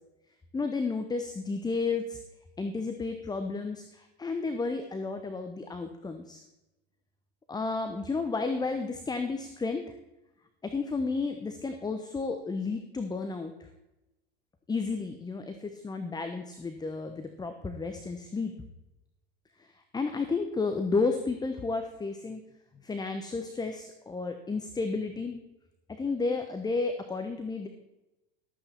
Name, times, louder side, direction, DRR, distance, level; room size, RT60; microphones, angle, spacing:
voice 1, 0.5-2.2 2.6-6.4 7.5-9.8 10.6-13.7 14.7-18.5 19.6-22.4 22.8-25.4 25.9-27.7, left 4 dB, 15° left, 7 dB, 1.0 m, -32 dB
13.0 x 8.8 x 4.4 m, 0.98 s
figure-of-eight pair, 80°, 29 cm